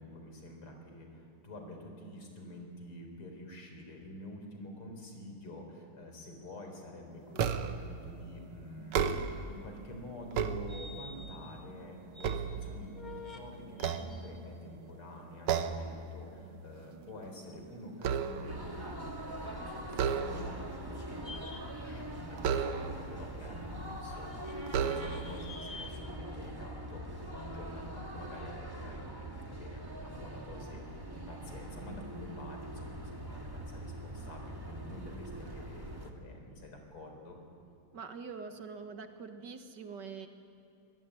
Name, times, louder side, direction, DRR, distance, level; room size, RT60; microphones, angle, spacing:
voice 1, 0.0-37.4, left 1 dB, 80° left, 3 dB, 5.0 m, -48 dB
sound 1, 7.4-7.9 8.8-9.6 10.1-11.2 11.7-13.2 13.7-14.7 15.5-16.0 16.3-16.6 17.0-18.7 19.9-20.7 22.4-23.2 23.9-24.0 24.7-25.4, right 7 dB, 75° right, 1.9 m, -33 dB
sound 2, 10.7-11.4 11.8-12.3 12.8-13.4 13.8-14.4 21.2-21.6 24.3-25.9, left 2 dB, 20° left, 1.8 m, -47 dB
sound 3, 18.5-36.1, right 1 dB, 10° right, 1.8 m, -43 dB
voice 2, 37.9-40.3, right 5 dB, 55° right, 7 dB, 2.0 m, -44 dB
24.0 x 19.5 x 9.9 m, 2.4 s
omnidirectional pair, 2.4 m